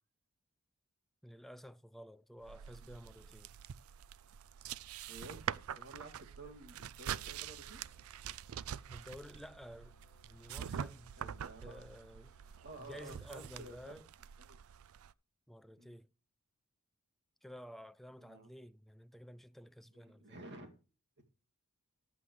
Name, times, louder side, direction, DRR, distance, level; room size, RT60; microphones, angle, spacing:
voice 1, 1.2-3.5 8.9-9.9 10.2-11.1 11.6-12.3 12.8-14.1 15.5-16.1 17.4-20.3, equal, ahead, 0.4 m, -52 dB
sound 1, 2.4-15.1, right 8 dB, 75° right, 0.4 m, -45 dB
voice 2, 4.7-7.8 11.2-11.9 12.5-14.0 14.4-14.6 15.8-16.0 18.2-18.5 19.9-20.7, right 2 dB, 55° right, 2.3 m, -53 dB
Musical instrument, 7.3-14.1, right 3 dB, 45° left, 1.9 m, -65 dB
14.5 x 9.8 x 3.2 m
head